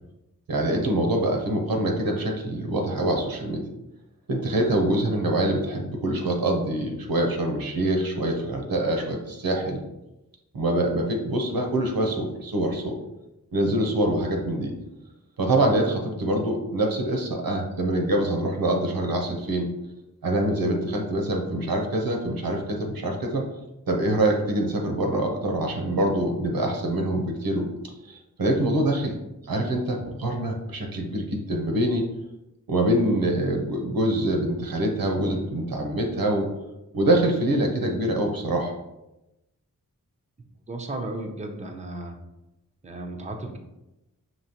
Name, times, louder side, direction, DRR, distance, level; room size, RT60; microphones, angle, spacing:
voice 1, 0.5-3.6 4.3-9.8 10.5-13.0 13.5-14.7 15.4-19.7 20.2-23.4 23.9-27.7 28.1-29.1 29.5-32.1 32.7-36.5 36.9-38.7, right 1 dB, 80° right, 2 dB, 0.9 m, -25 dB
voice 2, 40.7-42.2 42.8-43.6, right 2 dB, 20° right, 3 dB, 0.6 m, -34 dB
5.5 x 2.9 x 2.9 m, 0.94 s
cardioid pair, 55°, 35 cm